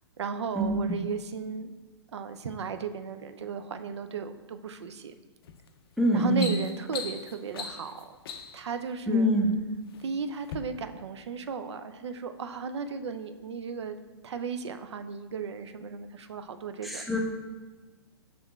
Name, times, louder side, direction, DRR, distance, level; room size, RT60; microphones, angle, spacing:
voice 1, 0.2-1.7 2.1-5.1 6.1-8.2 8.5-9.3 10.0-14.0 14.2-17.0, right 5 dB, 80° right, 10 dB, 0.4 m, -35 dB
sound 1, 5.4-5.7 6.1-8.7 9.5-10.0 10.4-10.6, left 6 dB, 60° left, 0.4 m, -39 dB
voice 2, 6.0-6.5 9.1-9.5 16.8-17.2, equal, ahead, 0 dB, 0.4 m, -24 dB
5.8 x 3.5 x 2.3 m, 1.3 s
hypercardioid pair, 125°, 14 cm